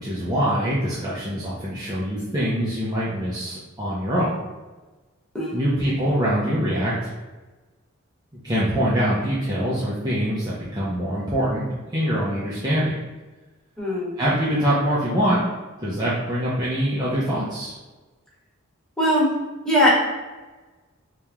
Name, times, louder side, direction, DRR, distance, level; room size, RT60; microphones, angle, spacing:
voice 1, 0.0-4.3 5.5-7.1 8.4-11.6 11.9-13.0 14.2-15.4 15.8-17.7, equal, 20° right, -9 dB, 0.7 m, -24 dB
voice 2, 13.8-14.1 19.0-19.3 19.6-19.9, equal, 5° left, -8 dB, 1.4 m, -19 dB
3.5 x 2.9 x 3.4 m, 1.2 s
head